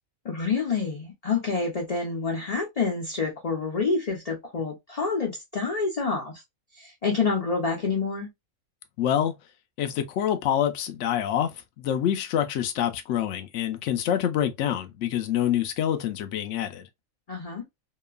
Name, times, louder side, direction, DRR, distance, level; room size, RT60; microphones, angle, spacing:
voice 1, 0.2-6.4 6.7-8.3 17.3-17.6, left 4 dB, 40° left, 0.5 m, -28 dB
voice 2, 9.0-9.3 9.8-16.9, left 10 dB, 65° left, 0.8 m, -26 dB
2.9 x 2.3 x 2.3 m
omnidirectional pair, 1.4 m